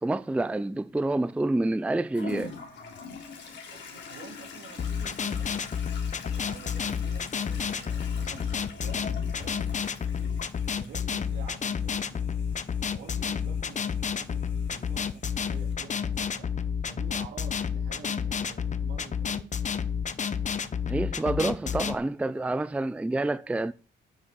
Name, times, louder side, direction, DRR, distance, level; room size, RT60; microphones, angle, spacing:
voice 1, 0.0-2.5 20.9-23.7, right 2 dB, 5° right, 0.4 m, -28 dB
Toilet flush, 2.1-15.7, left 5 dB, 65° left, 3.3 m, -45 dB
voice 2, 2.7-3.0 3.7-5.7 6.2-10.4 10.8-12.4 12.9-16.6 16.8-19.6, right 7 dB, 80° right, 3.1 m, -49 dB
sound 1, 4.8-21.9, left 7 dB, 35° left, 0.9 m, -30 dB
8.9 x 6.2 x 7.9 m
cardioid pair, 90°, 20 cm